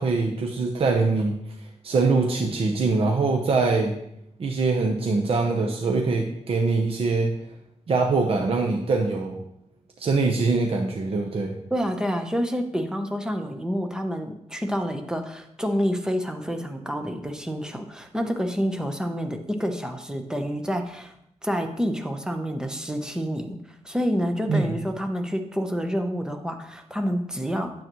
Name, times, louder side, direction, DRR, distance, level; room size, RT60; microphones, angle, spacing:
voice 1, 0.0-1.4 1.8-3.9 4.4-7.3 7.9-9.4 10.0-11.6 24.5-24.8, right 3 dB, 55° right, 2 dB, 0.8 m, -23 dB
voice 2, 11.7-21.1 21.4-27.7, equal, 5° right, 5 dB, 0.9 m, -28 dB
9.4 x 7.5 x 3.1 m, 0.77 s
wide cardioid pair, 125°, 12 cm